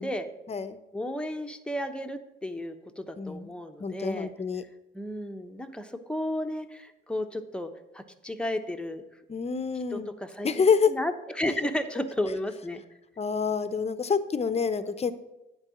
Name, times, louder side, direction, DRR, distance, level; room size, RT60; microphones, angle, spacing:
voice 1, 0.9-4.3 4.9-9.0 9.9-10.5 10.9-12.8, left 1 dB, 5° left, 6 dB, 1.0 m, -33 dB
voice 2, 3.2-3.5 3.8-4.6 9.3-10.1 10.4-10.9 13.2-15.1, left 5 dB, 30° left, 12 dB, 0.8 m, -27 dB
9.8 x 4.7 x 7.7 m, 0.93 s
cardioid pair, 90°, 20 cm